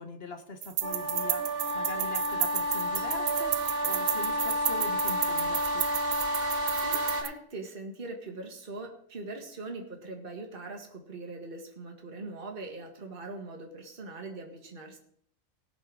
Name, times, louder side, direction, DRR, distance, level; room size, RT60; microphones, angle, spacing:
voice 1, 0.0-5.8, left 2 dB, 50° left, 6 dB, 1.4 m, -42 dB
sound 1, 0.6-7.3, right 10 dB, 60° right, 0.6 m, -32 dB
sound 2, 0.8-7.2, equal, 90° right, 2.7 m, -30 dB
voice 2, 6.3-15.0, right 2 dB, 40° right, 2 dB, 1.8 m, -42 dB
18.5 x 6.2 x 4.8 m, 0.68 s
omnidirectional pair, 1.4 m